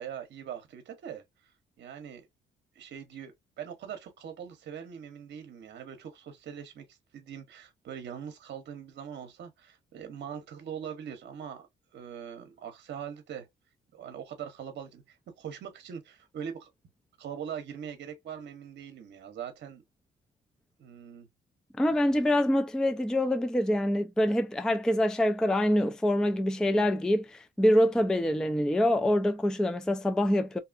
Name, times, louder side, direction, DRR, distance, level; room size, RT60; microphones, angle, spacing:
voice 1, 0.0-1.5 1.8-2.3 2.7-11.7 11.9-13.5 13.9-16.7 17.2-19.8 20.8-21.3, right 8 dB, 60° right, 0.8 m, -42 dB
voice 2, 21.8-30.6, left 1 dB, 5° left, 0.3 m, -25 dB
2.7 x 2.4 x 2.4 m
cardioid pair, 90°, 20 cm